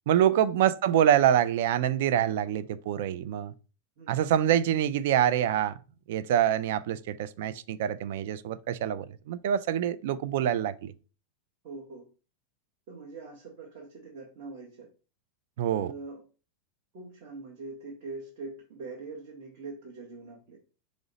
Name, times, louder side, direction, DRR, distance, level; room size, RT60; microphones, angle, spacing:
voice 1, 0.1-3.5 4.1-5.8 6.1-10.9 15.6-15.9, right 10 dB, 60° right, 0.3 m, -25 dB
voice 2, 11.6-12.0 12.9-14.9 15.7-16.2 16.9-20.6, right 3 dB, 40° right, 1.0 m, -43 dB
5.0 x 2.0 x 3.9 m
supercardioid pair, 170°, 0 cm